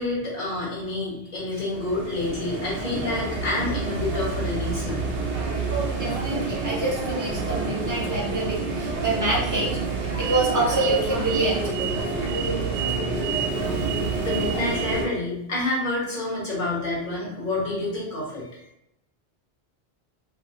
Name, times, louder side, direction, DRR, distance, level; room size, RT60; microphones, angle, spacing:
voice 1, 0.0-5.0 14.2-18.6, left 2 dB, 50° left, -6 dB, 1.3 m, -28 dB
sound 1, 1.7-15.1, right 4 dB, 85° right, 0.9 m, -28 dB
voice 2, 5.7-11.9 12.2-12.4 12.9-13.1 13.4-13.5, right 2 dB, 20° right, -4 dB, 0.6 m, -27 dB
2.8 x 2.0 x 3.7 m, 0.80 s
omnidirectional pair, 1.1 m